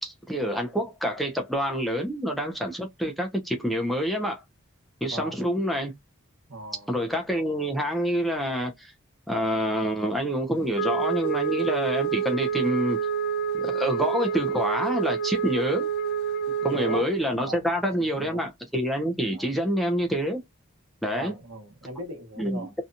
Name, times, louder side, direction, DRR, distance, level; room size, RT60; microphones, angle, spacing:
voice 1, 0.0-4.4 5.0-5.9 6.9-8.9 9.3-13.0 13.6-15.9 16.6-20.4 21.0-21.4 22.4-22.7, equal, ahead, 0.5 m, -27 dB
voice 2, 6.5-6.9 16.5-17.0 17.4-17.6 18.0-18.5 19.3-19.5 21.1-22.7, right 2 dB, 80° right, 1.0 m, -38 dB
Wind instrument woodwind instrument, 10.7-17.2, right 7 dB, 50° left, 0.5 m, -28 dB
2.8 x 2.2 x 2.5 m
head